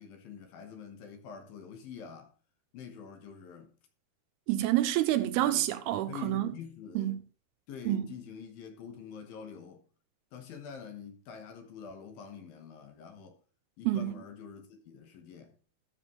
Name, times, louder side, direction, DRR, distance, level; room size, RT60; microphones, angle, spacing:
voice 1, 0.0-2.3 2.7-3.7 5.3-5.7 6.1-7.2 7.7-9.8 10.3-13.4 13.8-15.6, left 7 dB, 70° left, 2.7 m, -46 dB
voice 2, 4.5-6.5 7.0-7.2 7.9-8.1 13.9-14.1, right 14 dB, 80° right, 2.4 m, -28 dB
13.5 x 7.1 x 3.1 m
omnidirectional pair, 4.8 m